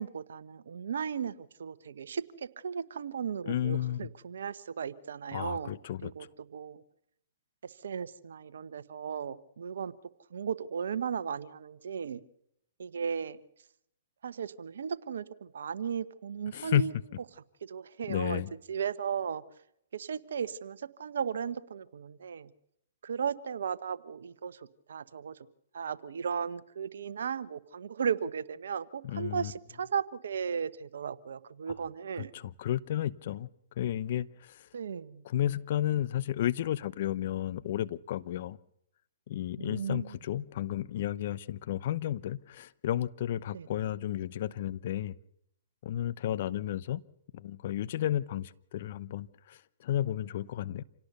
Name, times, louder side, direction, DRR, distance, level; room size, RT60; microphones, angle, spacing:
voice 1, 0.0-6.3 6.5-6.8 7.6-9.9 10.3-12.2 12.8-13.4 14.2-16.9 17.6-18.4 18.7-19.4 19.9-22.5 23.0-25.4 25.7-32.3 34.7-35.2 39.6-40.2 43.5-43.7, right 7 dB, 70° right, 1.1 m, -36 dB
voice 2, 3.5-4.1 5.3-6.1 16.5-16.9 18.1-18.5 29.0-29.5 32.2-33.5 33.8-34.6 35.2-38.6 39.3-45.1 45.8-47.0 47.3-50.8, left 12 dB, 55° left, 0.8 m, -32 dB
27.0 x 18.0 x 6.8 m
hypercardioid pair, 130°, 0 cm